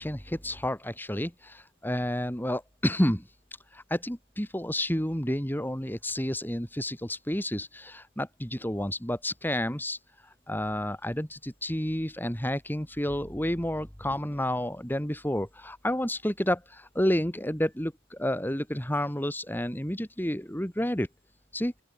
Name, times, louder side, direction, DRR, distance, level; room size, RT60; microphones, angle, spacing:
voice 1, 0.0-3.2 3.7-10.0 10.5-21.1 21.5-21.7, left 1 dB, 10° left, 3.5 m, -30 dB
open air
head